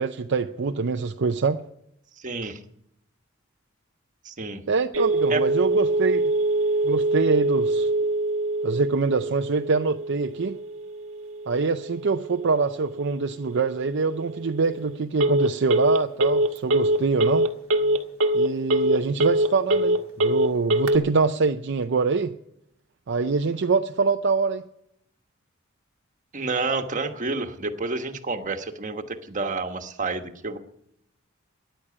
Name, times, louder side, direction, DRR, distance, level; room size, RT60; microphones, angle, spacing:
voice 1, 0.0-1.6 4.7-6.3 6.8-7.9 8.6-10.6 11.5-17.5 18.3-22.3 23.1-24.6, right 4 dB, 60° right, 0.6 m, -24 dB
voice 2, 2.2-2.6 4.2-4.6 5.3-5.5 26.3-30.6, right 3 dB, 40° right, 1.3 m, -29 dB
Telephone, 4.9-21.0, right 1 dB, 90° right, 1.3 m, -24 dB
13.5 x 10.5 x 8.4 m
head